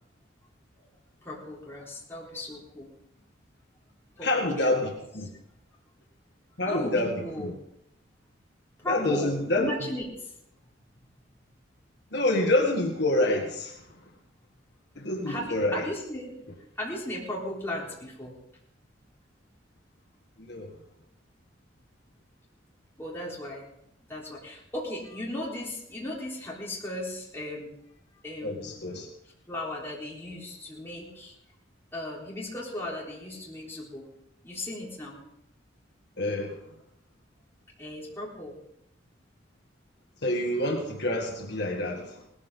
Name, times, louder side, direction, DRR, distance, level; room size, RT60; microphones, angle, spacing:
voice 1, 1.2-2.9 4.2-4.9 6.7-7.5 8.8-10.3 15.3-16.4 16.8-18.3 23.0-23.7 24.1-27.7 28.2-28.8 29.5-31.3 31.9-34.1 34.4-35.2 37.8-38.6, left 1 dB, 15° left, -5 dB, 3.7 m, -36 dB
voice 2, 4.2-5.3 6.6-7.5 8.9-9.7 12.1-13.8 14.9-15.8 20.5-20.7 28.4-29.1 36.2-36.6 40.2-42.2, left 1 dB, 60° left, 1 dB, 1.7 m, -27 dB
18.5 x 14.0 x 3.8 m, 0.79 s
head